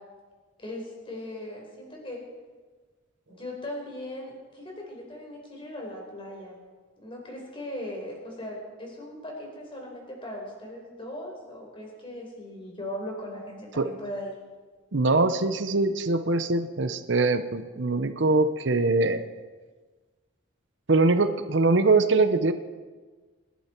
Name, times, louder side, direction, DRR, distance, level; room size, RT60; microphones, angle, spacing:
voice 1, 0.6-2.2 3.3-6.5 7.0-14.3, left 1 dB, 25° left, -1 dB, 4.5 m, -38 dB
voice 2, 14.9-19.2 20.9-22.5, right 3 dB, 60° right, 10 dB, 0.8 m, -23 dB
27.5 x 11.5 x 4.5 m, 1.4 s
head